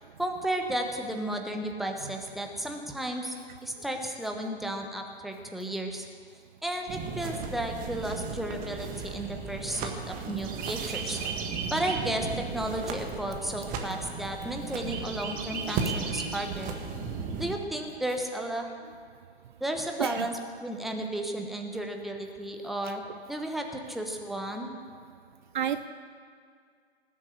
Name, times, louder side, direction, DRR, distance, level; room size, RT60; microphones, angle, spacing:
voice 1, 0.2-3.3 3.6-6.0 6.6-11.2 11.7-16.8 17.4-18.7 19.6-23.0 23.3-24.7, right 1 dB, ahead, 3 dB, 1.1 m, -33 dB
sound 1, 6.9-17.6, right 5 dB, 25° right, 1.5 m, -35 dB
voice 2, 20.0-20.3 22.9-23.0 25.5-25.9, right 10 dB, 45° right, 11 dB, 0.6 m, -30 dB
18.5 x 7.5 x 8.1 m, 2.1 s
figure-of-eight pair, 120°, 33 cm